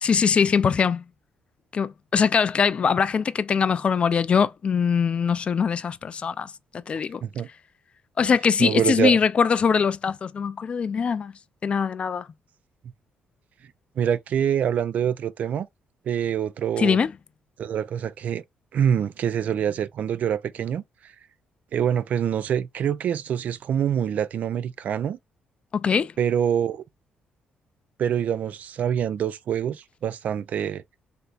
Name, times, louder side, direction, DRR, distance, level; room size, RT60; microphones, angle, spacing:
voice 1, 0.0-1.0 1.7-7.2 8.2-11.3 11.6-12.3 16.8-17.1 25.7-26.1, left 6 dB, 40° left, 0.3 m, -22 dB
voice 2, 8.6-9.2 14.0-15.7 16.1-17.0 17.6-18.4 18.7-21.1 21.7-25.2 26.2-26.8 28.0-30.8, right 9 dB, 60° right, 0.3 m, -25 dB
3.4 x 2.8 x 2.4 m
cardioid pair, 95°, 3 cm